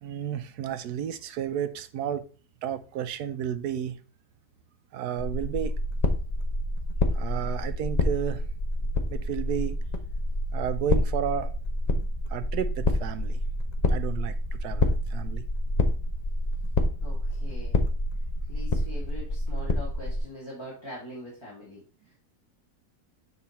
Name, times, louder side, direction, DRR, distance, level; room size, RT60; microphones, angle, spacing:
voice 1, 0.0-2.3 2.6-4.0 4.9-5.8 7.1-8.4 9.1-9.8 10.5-11.5 12.3-13.4 13.9-15.4, right 9 dB, 80° right, 1.2 m, -32 dB
sound 1, 5.2-20.2, left 1 dB, 35° left, 0.7 m, -28 dB
voice 2, 17.0-17.8 18.5-21.8, left 1 dB, 15° left, 2.2 m, -42 dB
7.3 x 3.9 x 4.2 m
omnidirectional pair, 1.7 m